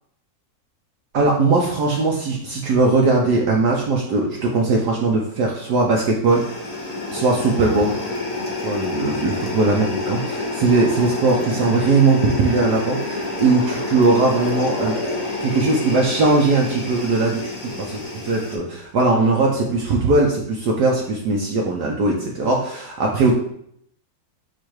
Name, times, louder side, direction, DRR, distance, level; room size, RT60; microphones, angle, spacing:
voice 1, 1.1-6.4 6.7-6.8 7.1-8.0 8.6-14.9 15.4-23.3, right 3 dB, 65° right, -1 dB, 1.1 m, -19 dB
sound 1, 6.3-18.6, left 2 dB, 50° left, 1.3 m, -28 dB
4.6 x 2.5 x 4.5 m, 0.69 s
omnidirectional pair, 2.1 m